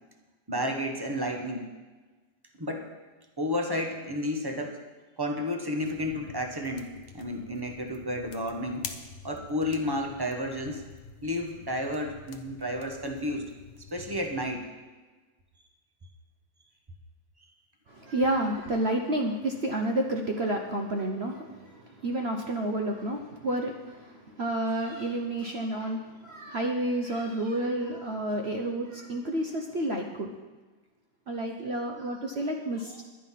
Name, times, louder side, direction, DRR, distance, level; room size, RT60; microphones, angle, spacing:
voice 1, 0.5-1.7 2.6-2.9 3.4-4.8 5.2-6.9 7.1-8.9 9.2-10.8 11.2-13.5 13.8-14.7, left 1 dB, 20° right, 3 dB, 0.7 m, -31 dB
sound 1, 5.8-14.6, left 6 dB, 55° left, 0.7 m, -47 dB
voice 2, 17.9-30.3 31.3-33.0, right 1 dB, 55° right, 2 dB, 0.7 m, -30 dB
11.0 x 10.0 x 5.7 m, 1.3 s
omnidirectional pair, 2.1 m